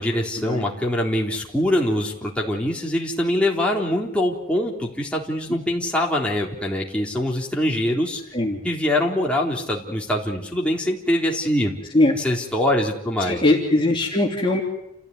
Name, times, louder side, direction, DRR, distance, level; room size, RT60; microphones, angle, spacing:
voice 1, 0.0-8.2 8.6-11.7 12.2-13.4, left 1 dB, 5° left, -2 dB, 3.8 m, -23 dB
voice 2, 13.2-14.6, left 2 dB, 25° left, -1 dB, 3.0 m, -20 dB
29.0 x 15.5 x 9.7 m, 0.83 s
head